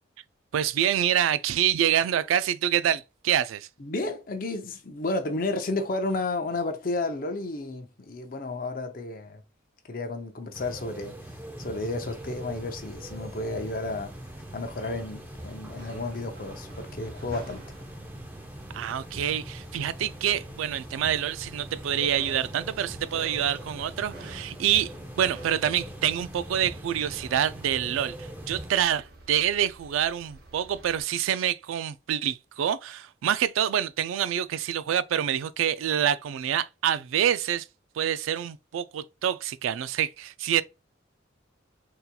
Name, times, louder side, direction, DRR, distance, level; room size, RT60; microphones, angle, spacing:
voice 1, 0.5-3.7 18.7-37.7 37.9-40.6, right 10 dB, 85° right, 0.3 m, -26 dB
voice 2, 3.8-9.4 9.9-11.2 11.6-14.1 14.5-17.6, left 2 dB, 45° left, 0.6 m, -32 dB
sound 1, 10.5-28.7, right 1 dB, 10° right, 0.5 m, -42 dB
sound 2, 12.1-31.0, right 2 dB, 50° right, 0.7 m, -50 dB
3.9 x 2.8 x 2.2 m
head